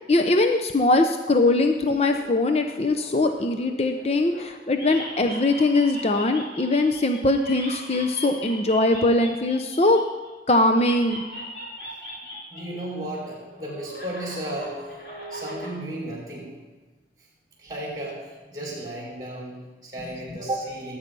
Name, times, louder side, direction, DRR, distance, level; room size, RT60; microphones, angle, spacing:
voice 1, 0.1-10.0 10.5-11.2, left 2 dB, 35° left, 6 dB, 0.6 m, -21 dB
sound 1, 2.1-4.5 4.7-10.3 10.7-12.8 13.1-15.7, left 1 dB, 60° left, 4.4 m, -39 dB
voice 2, 12.5-14.8 15.3-16.5 17.6-21.0, right 1 dB, 20° right, -4 dB, 5.2 m, -34 dB
18.5 x 9.6 x 5.4 m, 1.3 s
head